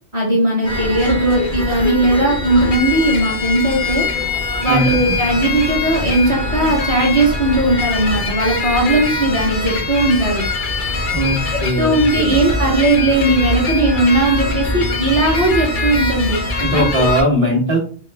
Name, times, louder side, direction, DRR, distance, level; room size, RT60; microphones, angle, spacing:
voice 1, 0.1-4.1 4.6-10.4 11.5-16.4 16.7-17.1, right 2 dB, 30° right, -4 dB, 1.1 m, -17 dB
sound 1, 0.6-17.2, left 3 dB, 55° left, 0.7 m, -22 dB
voice 2, 11.1-12.4 16.6-17.8, equal, 60° right, -1 dB, 1.2 m, -19 dB
3.6 x 2.1 x 3.3 m, 0.43 s
omnidirectional pair, 1.1 m